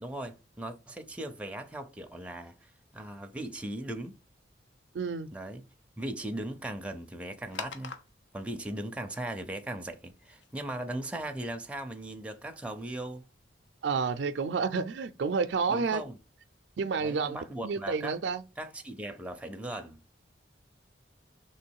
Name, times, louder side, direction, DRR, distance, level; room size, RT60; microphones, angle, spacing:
voice 1, 0.0-4.2 5.3-5.6 6.0-7.9 8.3-13.2 15.7-16.2 17.0-18.2 18.6-20.0, right 1 dB, 5° right, 0.5 m, -38 dB
voice 2, 4.9-5.3 13.8-16.0 16.8-17.4 17.6-18.4, right 5 dB, 70° right, 0.4 m, -30 dB
sound 1, 7.5-13.5, left 5 dB, 90° left, 0.7 m, -49 dB
3.3 x 3.1 x 4.5 m
head